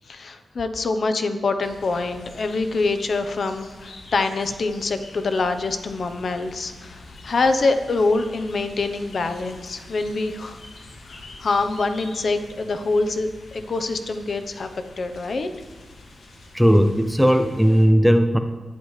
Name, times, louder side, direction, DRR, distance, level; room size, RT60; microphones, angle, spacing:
voice 1, 0.1-10.6 11.1-14.7 15.0-15.5, left 3 dB, 50° left, 8 dB, 0.9 m, -25 dB
sound 1, 1.6-17.9, left 2 dB, 75° left, 2.3 m, -45 dB
voice 2, 16.5-18.4, equal, ahead, 7 dB, 0.5 m, -17 dB
20.0 x 11.5 x 3.3 m, 1.3 s
wide cardioid pair, 165°, 0 cm